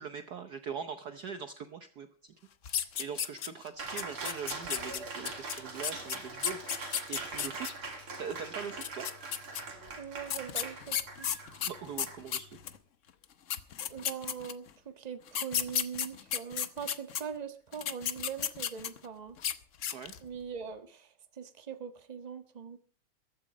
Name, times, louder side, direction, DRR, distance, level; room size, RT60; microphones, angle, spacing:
voice 1, 0.0-2.3 2.6-7.8 8.2-9.1 11.7-12.6 19.9-20.2, right 6 dB, 60° right, 9 dB, 1.2 m, -42 dB
sound 1, 2.6-3.7 4.0-7.7 8.7-9.6 10.3-12.8 13.2-13.3 13.5-14.7 15.3-17.2 17.7-19.1 19.4-19.5 19.8-20.2, left 9 dB, 60° left, 0.8 m, -33 dB
Cheering, 3.8-12.7, right 3 dB, 75° right, 3.5 m, -42 dB
voice 2, 10.0-11.3 13.9-19.4 20.2-21.1 21.4-22.8, right 7 dB, 20° right, 8 dB, 1.2 m, -42 dB
14.5 x 13.0 x 5.1 m, 0.42 s
omnidirectional pair, 2.4 m